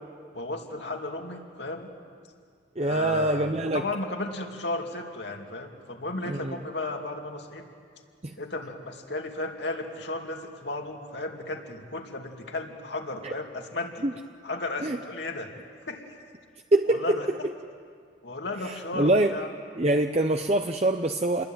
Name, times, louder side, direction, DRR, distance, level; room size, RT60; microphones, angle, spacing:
voice 1, 0.3-1.9 2.8-7.7 8.4-14.1 14.4-15.5 15.9-16.0 16.9-17.3 18.2-19.5, left 2 dB, 65° left, 2 dB, 2.7 m, -34 dB
voice 2, 2.8-3.8 6.3-6.5 8.2-8.4 13.2-13.3 14.0-14.1 14.8-15.0 16.7-17.2 18.6-19.4 19.8-21.4, right 1 dB, 35° right, 6 dB, 0.8 m, -24 dB
28.5 x 22.0 x 9.3 m, 2.1 s
head